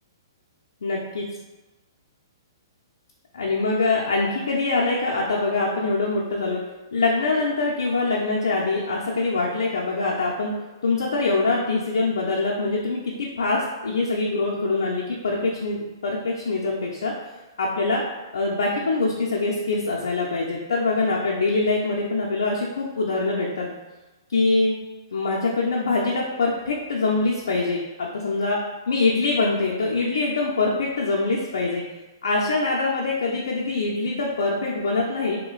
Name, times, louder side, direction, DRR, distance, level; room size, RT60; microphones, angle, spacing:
voice 1, 0.8-1.3 3.3-6.6 6.9-10.5 10.8-17.1 17.6-18.0 18.3-23.7 24.3-24.8 25.1-28.6 28.9-31.8 32.2-35.4, left 3 dB, 75° left, -3 dB, 0.6 m, -24 dB
5.3 x 2.2 x 2.4 m, 1.1 s
hypercardioid pair, 125°, 2 cm